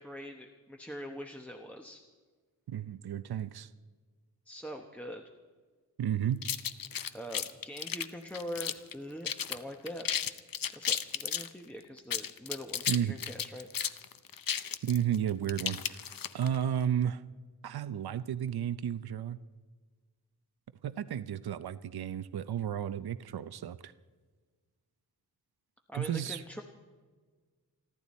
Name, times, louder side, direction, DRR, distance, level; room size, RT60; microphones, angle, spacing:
voice 1, 0.0-2.0 4.5-5.2 7.1-10.1 10.8-13.7 25.9-26.6, equal, 5° left, 2 dB, 0.9 m, -43 dB
voice 2, 2.7-3.7 6.0-6.4 12.9-13.2 14.8-16.0 16.3-17.2 17.6-19.4 20.8-23.9 25.9-26.4, right 9 dB, 80° right, 13 dB, 0.6 m, -32 dB
sound 1, 6.4-8.9 9.2-9.6 9.9-11.5 12.0-16.6, left 8 dB, 65° left, 0.7 m, -34 dB
29.0 x 11.5 x 4.2 m, 1.5 s
wide cardioid pair, 130°, 37 cm